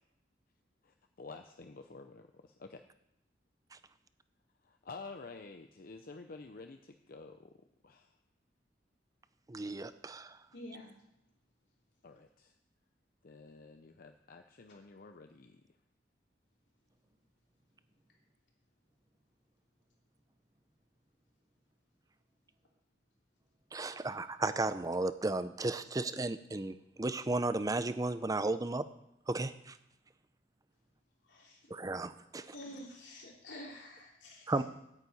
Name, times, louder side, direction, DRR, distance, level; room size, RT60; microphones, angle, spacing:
voice 1, 0.8-2.8 4.6-7.5 7.8-8.1 12.0-12.5 13.2-15.6, left 3 dB, 55° left, 6 dB, 0.6 m, -50 dB
voice 2, 9.5-10.4 23.7-28.8 29.3-29.8 31.7-32.6 34.5-34.6, right 2 dB, 20° right, 13 dB, 0.5 m, -34 dB
voice 3, 10.5-10.9 31.3-31.6 32.5-34.5, left 1 dB, 80° left, -2 dB, 3.4 m, -48 dB
9.2 x 6.7 x 8.6 m, 0.84 s
head